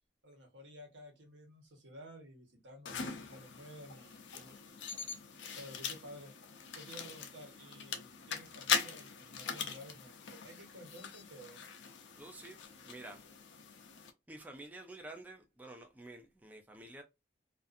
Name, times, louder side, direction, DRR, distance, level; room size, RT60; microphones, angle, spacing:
voice 1, 0.2-4.6 5.5-6.3 6.7-11.6, equal, 80° right, 1.1 m, -53 dB
sound 1, 2.9-14.1, left 6 dB, 75° left, 0.5 m, -41 dB
voice 2, 12.2-13.3 14.3-17.0, right 2 dB, 10° right, 0.3 m, -50 dB
2.5 x 2.4 x 2.5 m
head